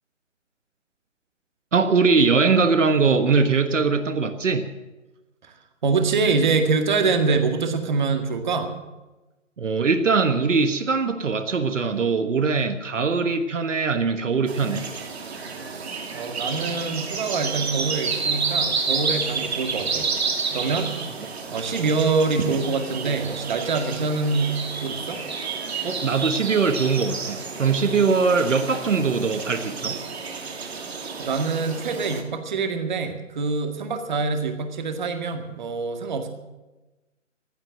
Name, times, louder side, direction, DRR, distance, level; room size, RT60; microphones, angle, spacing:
voice 1, 1.7-4.6 9.6-14.9 25.8-30.0, right 4 dB, 70° right, 8 dB, 1.4 m, -21 dB
voice 2, 5.8-8.7 15.8-20.1 20.5-20.9 21.5-25.2 31.2-36.3, right 4 dB, 35° right, 6 dB, 2.0 m, -25 dB
sound 1, 14.5-32.2, right 5 dB, 55° right, 2.7 m, -30 dB
15.0 x 11.0 x 7.7 m, 1.1 s
hypercardioid pair, 160°, 38 cm